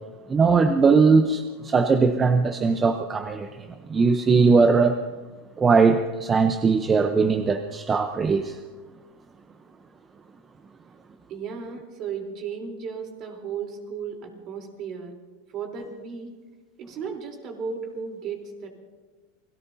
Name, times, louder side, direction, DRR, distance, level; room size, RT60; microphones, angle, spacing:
voice 1, 0.3-3.5 3.9-5.0 5.6-8.6, right 4 dB, 20° right, 8 dB, 0.8 m, -20 dB
voice 2, 11.3-15.2 15.5-16.4 16.8-18.7, right 6 dB, 45° right, 2 dB, 3.7 m, -35 dB
29.0 x 18.0 x 2.8 m, 1.3 s
supercardioid pair, 115°, 0 cm